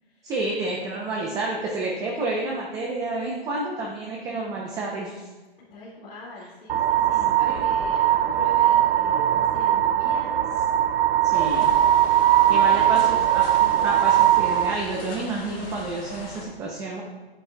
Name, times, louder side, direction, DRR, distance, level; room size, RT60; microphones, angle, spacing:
voice 1, 0.2-5.3 11.2-11.7 12.5-13.4 13.8-17.0, right 2 dB, 10° right, -2 dB, 0.5 m, -29 dB
voice 2, 5.6-10.5 11.4-13.2, left 1 dB, 65° left, -8 dB, 2.1 m, -42 dB
sound 1, 6.7-14.7, right 11 dB, 75° right, 0.5 m, -20 dB
sound 2, 11.3-16.5, left 2 dB, 40° left, 2.7 m, -40 dB
9.7 x 8.7 x 2.2 m, 1.2 s
hypercardioid pair, 150°, 30 cm